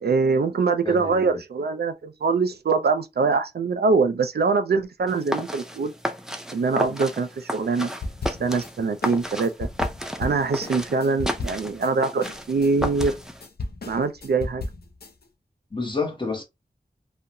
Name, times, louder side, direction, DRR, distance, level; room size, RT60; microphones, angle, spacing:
voice 1, 0.0-5.9 6.5-7.9 8.4-9.7 10.2-13.1 13.9-14.6, right 4 dB, 75° right, 0.5 m, -23 dB
voice 2, 0.8-1.4 15.7-16.4, left 3 dB, 30° left, 1.0 m, -29 dB
sound 1, 5.1-13.5, equal, 5° right, 0.4 m, -33 dB
sound 2, 8.0-8.7 9.0-11.9 12.2-15.1, left 2 dB, 70° left, 0.5 m, -34 dB
2.8 x 2.1 x 2.5 m
wide cardioid pair, 60°, 17 cm